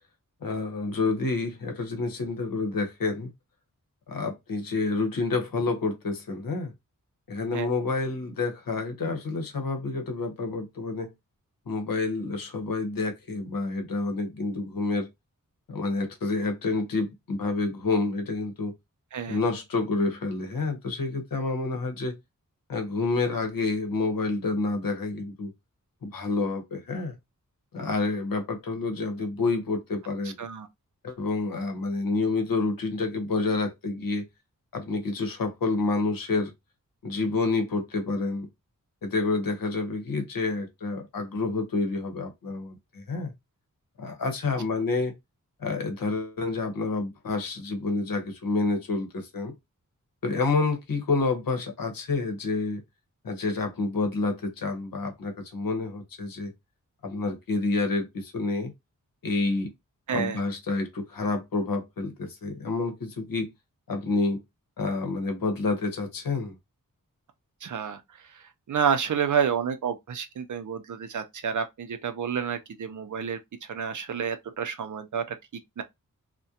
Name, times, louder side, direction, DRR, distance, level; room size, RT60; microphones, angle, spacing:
voice 1, 0.4-3.3 4.1-6.7 7.3-11.1 11.7-15.1 15.7-18.7 19.3-22.2 22.7-25.5 26.0-27.2 27.7-30.3 31.0-34.2 34.7-36.5 37.0-38.5 39.0-43.3 44.0-45.1 45.6-49.5 50.2-52.8 53.2-56.5 57.0-58.7 59.2-59.7 60.1-63.5 63.9-64.4 64.8-66.6, left 3 dB, 85° left, 0.8 m, -28 dB
voice 2, 60.1-60.4 67.6-68.0 68.3-75.4 75.8-75.9, right 7 dB, 60° right, 0.5 m, -29 dB
2.3 x 2.1 x 2.7 m
wide cardioid pair, 100°, 33 cm